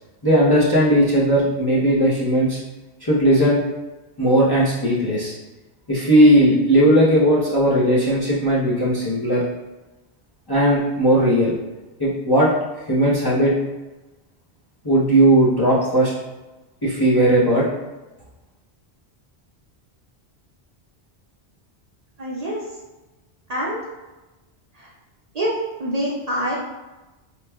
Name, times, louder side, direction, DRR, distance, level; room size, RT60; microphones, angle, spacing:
voice 1, 0.2-2.6 3.0-3.6 4.2-5.3 5.9-9.4 10.5-11.6 12.0-12.5 12.9-13.5 14.8-16.1 16.8-17.7, right 1 dB, 25° left, -8 dB, 0.6 m, -17 dB
voice 2, 22.2-22.6 23.5-23.8 25.3-25.5 25.8-26.5, equal, 45° right, -5 dB, 0.7 m, -25 dB
4.3 x 3.1 x 2.2 m, 1.1 s
omnidirectional pair, 1.1 m